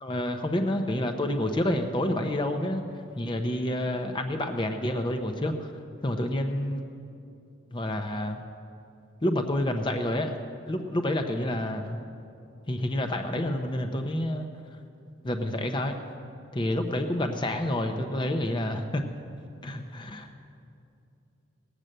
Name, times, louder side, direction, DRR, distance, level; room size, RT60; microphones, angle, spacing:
voice 1, 0.0-2.8 3.2-5.7 6.0-6.8 7.7-8.4 9.2-10.4 10.7-12.0 12.7-14.5 15.2-15.9 16.5-19.0 19.6-20.3, left 1 dB, 25° left, 6 dB, 0.7 m, -28 dB
18.5 x 6.6 x 7.6 m, 2.7 s
head